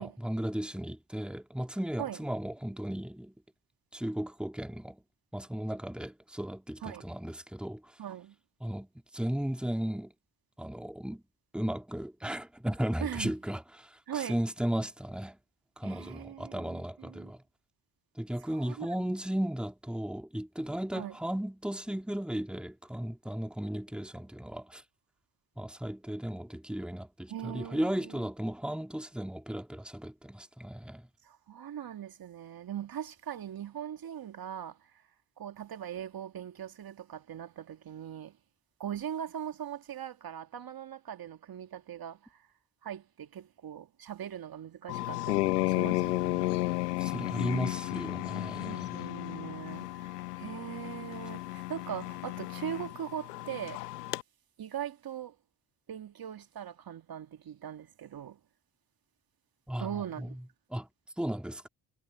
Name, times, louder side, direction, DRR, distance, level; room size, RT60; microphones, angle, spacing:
voice 1, 0.0-3.3 3.9-5.0 5.3-8.0 8.6-10.1 10.6-11.2 11.5-15.4 15.8-17.4 18.2-24.8 25.6-31.1 47.0-49.0 59.7-60.4 60.7-60.9 61.2-61.7, right 1 dB, ahead, 2.5 m, -35 dB
voice 2, 8.0-8.4 13.0-13.3 14.1-14.4 15.8-17.3 18.5-19.0 20.9-21.1 27.3-28.3 31.2-35.0 35.4-38.4 38.8-42.5 42.8-47.0 48.6-53.9 54.6-55.4 55.9-58.4 59.8-60.4, right 9 dB, 50° right, 2.3 m, -41 dB
sound 1, 44.9-54.2, left 18 dB, 85° left, 0.8 m, -33 dB
hypercardioid pair, 45°, 46 cm